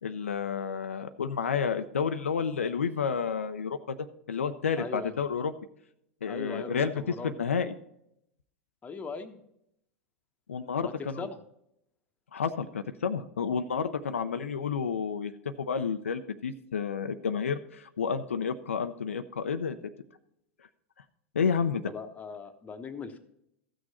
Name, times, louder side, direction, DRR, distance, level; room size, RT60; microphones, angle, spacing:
voice 1, 0.0-4.0 4.3-5.5 6.2-6.9 7.2-7.7 10.5-11.3 12.3-19.8 21.3-21.8, left 6 dB, 85° left, 9 dB, 0.5 m, -30 dB
voice 2, 4.8-5.1 6.3-7.3 8.8-9.4 10.8-11.4 21.9-23.2, left 4 dB, 20° left, 6 dB, 1.1 m, -39 dB
14.5 x 6.4 x 4.2 m, 0.78 s
hypercardioid pair, 95°, 7 cm